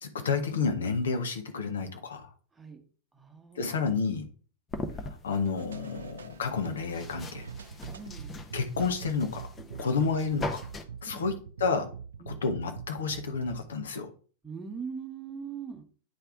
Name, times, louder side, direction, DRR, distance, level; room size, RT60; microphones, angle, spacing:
voice 1, 0.0-2.3 3.6-4.3 5.2-7.5 8.5-10.6 11.0-11.3 11.6-11.9 12.3-14.1, left 5 dB, 65° left, 6 dB, 0.9 m, -30 dB
voice 2, 3.1-3.8 7.9-8.3 9.8-9.9 11.1-11.3 12.2-12.4 14.4-15.8, right 6 dB, 15° right, 4 dB, 1.1 m, -41 dB
sound 1, 4.7-10.8, left 2 dB, 20° left, 0.8 m, -41 dB
sound 2, 5.6-13.6, right 7 dB, 70° right, 0.4 m, -44 dB
9.6 x 3.4 x 3.6 m, 0.41 s
figure-of-eight pair, 90°, 0 cm